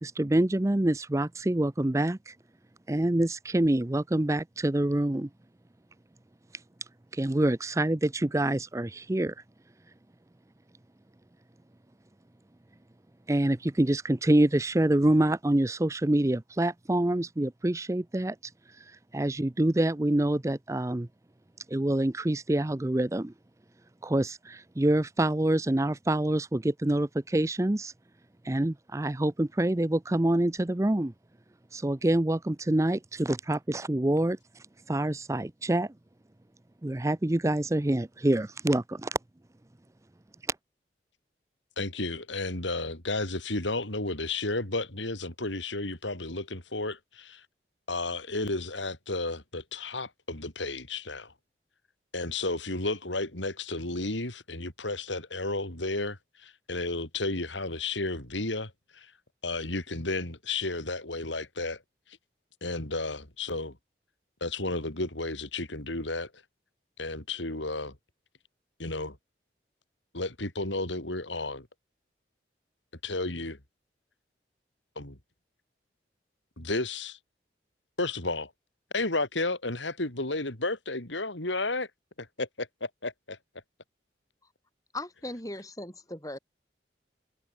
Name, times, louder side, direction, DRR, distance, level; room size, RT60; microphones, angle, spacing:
voice 1, 0.0-2.3 2.9-5.3 7.1-9.3 13.3-18.5 18.8-21.1 21.7-23.3 24.0-27.9 28.4-31.1 31.7-35.9 36.8-39.2, right 1 dB, 15° right, 0.5 m, -26 dB
voice 2, 41.8-47.4 47.9-51.3 52.1-59.1 59.4-61.8 62.6-63.8 64.4-66.3 67.0-68.0 68.8-69.2 70.1-71.7 73.0-73.6 75.0-75.2 76.6-77.2 78.0-78.5 78.9-81.9 82.2-83.4, left 2 dB, 85° left, 4.6 m, -32 dB
voice 3, 84.9-86.4, left 1 dB, 20° left, 7.0 m, -38 dB
head